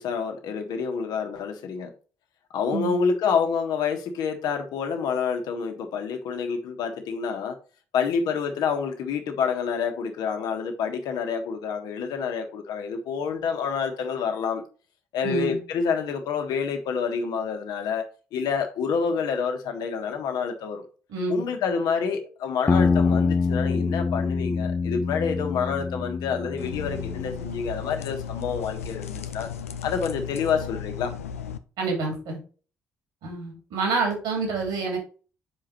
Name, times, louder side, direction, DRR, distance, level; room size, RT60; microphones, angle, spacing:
voice 1, 0.0-1.9 2.5-7.6 7.9-14.6 15.1-18.0 18.3-20.8 21.3-29.5 29.8-31.1, left 6 dB, 65° left, 1.4 m, -28 dB
voice 2, 15.2-15.6 21.1-21.5 31.8-32.4 33.2-35.0, right 4 dB, 70° right, 3.1 m, -28 dB
sound 1, 22.7-27.3, left 4 dB, 25° left, 0.4 m, -25 dB
sound 2, 26.6-31.6, left 7 dB, 85° left, 0.4 m, -35 dB
7.0 x 5.1 x 4.3 m
figure-of-eight pair, 45°, 7 cm